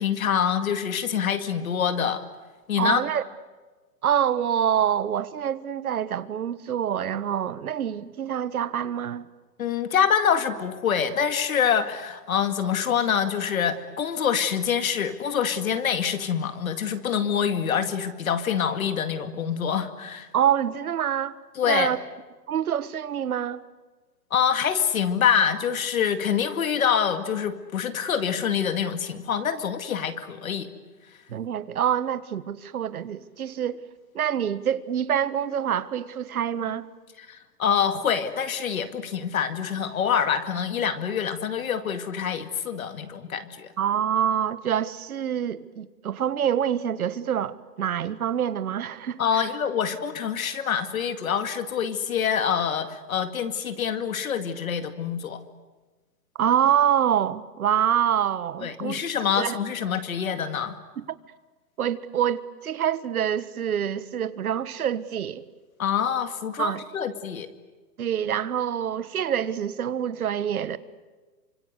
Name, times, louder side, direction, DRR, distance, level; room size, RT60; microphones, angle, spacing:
voice 1, 0.0-2.2 2.7-3.0 9.6-20.3 21.5-22.0 24.3-30.7 37.2-43.7 49.2-55.4 58.6-60.8 65.8-67.5, left 8 dB, 55° left, 2.3 m, -26 dB
voice 2, 2.8-3.2 4.0-9.3 20.3-21.4 21.6-22.0 22.5-23.6 31.3-33.8 34.1-36.9 43.8-49.2 56.4-59.0 59.4-59.6 61.0-61.1 61.8-65.4 66.6-66.8 68.0-70.8, right 9 dB, 60° right, 1.5 m, -26 dB
28.0 x 25.5 x 8.1 m
hypercardioid pair, 175°, 49 cm